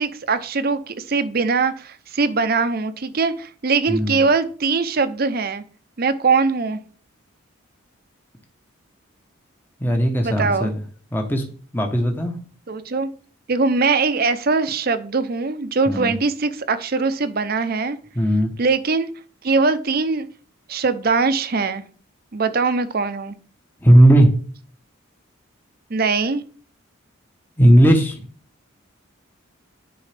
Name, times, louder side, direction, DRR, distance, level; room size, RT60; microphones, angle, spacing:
voice 1, 0.0-5.6 6.0-6.8 10.2-10.7 12.7-13.1 13.5-18.0 18.6-19.1 19.4-20.3 20.7-21.8 22.3-23.3 25.9-26.4, right 4 dB, 45° right, 11 dB, 0.6 m, -21 dB
voice 2, 3.9-4.2 9.8-10.7 11.1-11.4 11.7-12.3 15.9-16.1 18.2-18.5 23.8-24.3 27.6-28.2, right 1 dB, 10° left, 3 dB, 0.9 m, -16 dB
10.5 x 4.7 x 3.4 m, 0.43 s
head